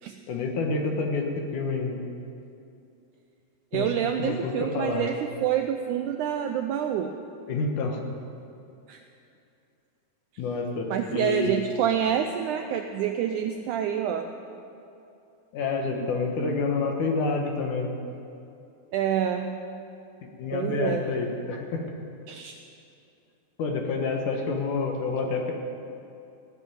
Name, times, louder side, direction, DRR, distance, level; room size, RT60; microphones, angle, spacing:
voice 1, 0.3-2.0 3.7-3.9 4.2-5.1 7.5-8.0 10.4-11.6 15.5-17.9 20.4-21.9 23.6-25.5, left 3 dB, 65° left, 2 dB, 2.5 m, -28 dB
voice 2, 3.7-7.2 8.9-9.0 10.9-14.3 15.9-16.1 18.9-19.6 20.5-21.0 22.3-22.6, right 9 dB, 85° right, 5 dB, 1.8 m, -27 dB
16.0 x 7.7 x 9.1 m, 2.6 s
omnidirectional pair, 4.2 m